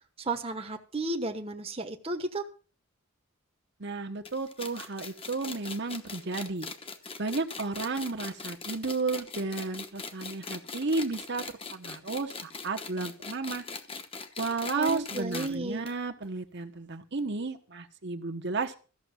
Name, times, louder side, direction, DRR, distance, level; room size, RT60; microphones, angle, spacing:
voice 1, 0.2-2.4 14.8-15.8, right 2 dB, 25° right, 5 dB, 1.1 m, -33 dB
voice 2, 3.8-6.7 7.2-11.5 11.7-13.6 14.4-18.8, right 3 dB, 55° right, 5 dB, 1.1 m, -33 dB
sound 1, 4.3-15.5 15.9-16.0 16.2-16.3 17.2-17.3, left 4 dB, 25° left, 1.0 m, -41 dB
14.0 x 6.6 x 7.5 m, 0.37 s
head